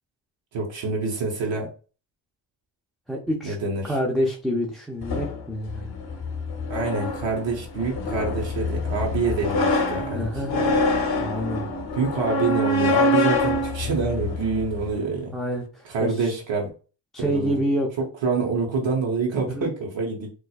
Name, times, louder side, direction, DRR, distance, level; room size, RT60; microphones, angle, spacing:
voice 1, 0.5-1.7 3.4-4.0 6.7-10.8 11.9-15.4 15.8-16.7 17.2-17.6 18.0-20.3, right 4 dB, 80° right, 0 dB, 1.0 m, -26 dB
voice 2, 3.1-3.6 3.8-5.9 10.1-10.5 11.2-11.7 15.3-16.3 17.1-17.9 19.5-19.7, equal, ahead, -1 dB, 0.5 m, -27 dB
sound 1, 5.0-15.0, left 2 dB, 55° left, 0.8 m, -25 dB
4.2 x 2.4 x 2.3 m, 0.35 s
cardioid pair, 110°, 45 cm